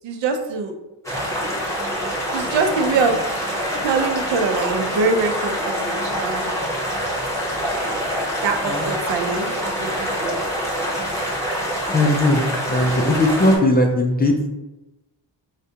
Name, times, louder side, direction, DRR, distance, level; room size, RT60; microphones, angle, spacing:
voice 1, 0.0-0.7 2.3-3.2 3.8-6.9 8.1-10.3, right 4 dB, 80° right, 5 dB, 0.6 m, -24 dB
sound 1, 1.0-13.6, equal, 5° left, 0.8 m, -25 dB
voice 2, 11.9-12.4 12.7-14.3, left 1 dB, 25° left, 2 dB, 0.4 m, -18 dB
4.8 x 2.2 x 2.7 m, 1.0 s
wide cardioid pair, 135°, 43 cm